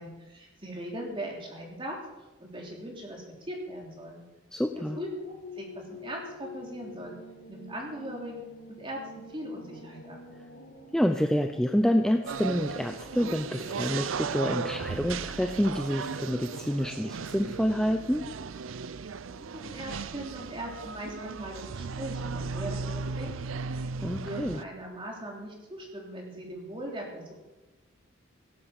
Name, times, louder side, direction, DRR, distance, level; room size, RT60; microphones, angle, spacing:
voice 1, 0.0-2.0 2.4-4.2 4.7-7.1 7.5-10.2 19.3-23.5 24.2-27.3, right 1 dB, 25° right, -1 dB, 3.4 m, -40 dB
voice 2, 4.5-5.0 10.4-10.5 10.9-18.3 24.0-24.6, equal, 5° left, 5 dB, 0.6 m, -28 dB
sound 1, 4.8-17.3, left 2 dB, 80° left, 1.8 m, -48 dB
sound 2, 12.3-24.6, right 5 dB, 80° right, 0.5 m, -36 dB
17.5 x 8.5 x 7.3 m, 1.1 s
head